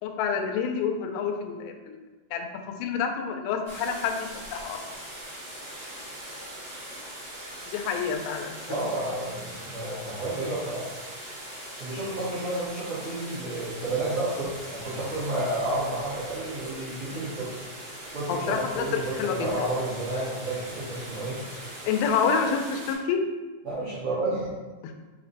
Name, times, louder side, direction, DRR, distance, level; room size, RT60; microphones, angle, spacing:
voice 1, 0.0-2.0 2.3-4.8 7.7-8.8 18.3-19.5 21.9-23.2 24.8-24.9, left 6 dB, 90° left, 4 dB, 2.4 m, -28 dB
sound 1, 3.7-22.9, right 1 dB, 50° right, 1.4 m, -41 dB
voice 2, 8.7-10.9 11.8-17.5 18.1-21.4 23.6-24.5, right 2 dB, 65° right, -12 dB, 1.5 m, -31 dB
6.0 x 2.1 x 3.9 m, 1.3 s
omnidirectional pair, 4.2 m